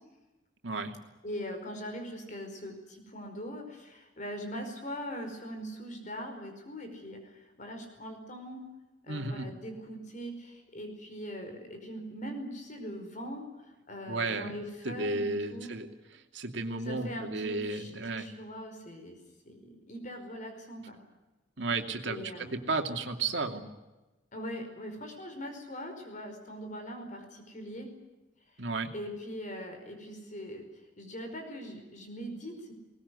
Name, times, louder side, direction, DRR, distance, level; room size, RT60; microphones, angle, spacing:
voice 1, 0.6-0.9 9.1-9.5 14.1-14.5 14.8-15.9 16.3-18.3 21.6-23.7 28.6-28.9, right 3 dB, 70° right, 5 dB, 2.6 m, -33 dB
voice 2, 1.2-7.2 7.6-8.6 9.0-13.5 13.9-15.7 16.9-17.9 18.2-19.2 19.5-21.0 22.0-22.6 24.3-27.9 28.9-30.6 31.0-32.7, equal, 45° left, 5 dB, 5.1 m, -41 dB
22.0 x 20.0 x 9.7 m, 1.1 s
head